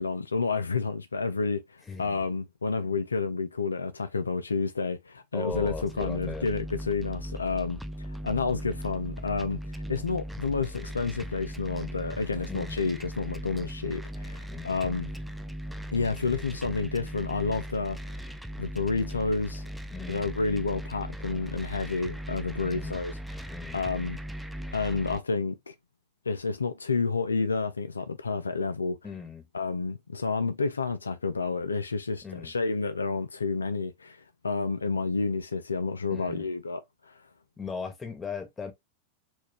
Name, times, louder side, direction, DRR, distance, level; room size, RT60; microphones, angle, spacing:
voice 1, 0.0-15.1 15.9-18.2 18.6-19.7 20.1-23.5 23.7-24.2 24.7-25.7 26.3-29.0 29.5-37.2, left 4 dB, 80° left, 0.3 m, -30 dB
voice 2, 1.9-2.2 5.3-6.5 12.5-12.8 14.5-14.8 19.9-20.3 22.6-23.0 23.5-23.8 29.0-29.5 32.2-32.5 36.1-36.5 37.6-38.7, left 5 dB, 15° left, 1.3 m, -38 dB
sound 1, 5.5-25.2, equal, 5° right, 0.4 m, -38 dB
4.3 x 2.3 x 2.8 m
figure-of-eight pair, 90°, 0 cm